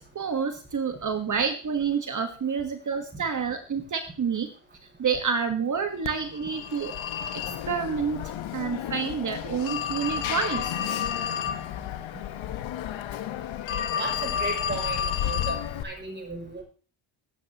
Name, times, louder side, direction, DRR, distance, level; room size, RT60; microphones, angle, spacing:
voice 1, 0.1-4.5 5.0-6.9 7.7-8.2 8.5-10.7, right 6 dB, 40° right, 6 dB, 1.5 m, -28 dB
Telephone, 6.0-15.8, left 9 dB, 80° left, 1.3 m, -31 dB
voice 2, 14.0-15.6 15.8-16.6, right 2 dB, 25° right, 1 dB, 7.1 m, -35 dB
19.0 x 8.5 x 3.0 m, 0.38 s
cardioid pair, 100°, 46 cm